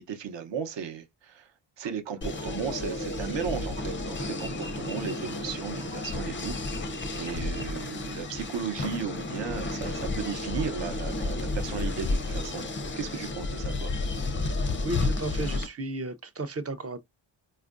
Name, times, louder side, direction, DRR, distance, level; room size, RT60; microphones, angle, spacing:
voice 1, 0.0-1.5 1.8-12.7 13.0-13.9, right 7 dB, 60° right, 0.8 m, -35 dB
sound 1, 1.8-7.0, right 7 dB, 85° right, 1.2 m, -54 dB
sound 2, 2.2-15.7, left 2 dB, 25° left, 0.4 m, -32 dB
voice 2, 14.8-17.0, right 2 dB, 30° right, 0.5 m, -33 dB
4.4 x 2.4 x 2.4 m
cardioid pair, 90°, 50 cm